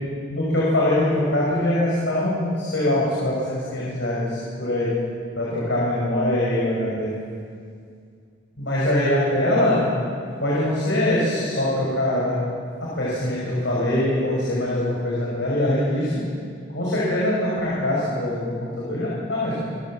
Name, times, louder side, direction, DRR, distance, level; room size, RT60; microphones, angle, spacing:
voice 1, 0.3-4.9 5.4-7.1 8.6-9.8 10.4-12.4 12.8-16.2 16.7-19.6, left 1 dB, 70° left, -6 dB, 5.9 m, -23 dB
27.5 x 14.5 x 7.4 m, 2.2 s
head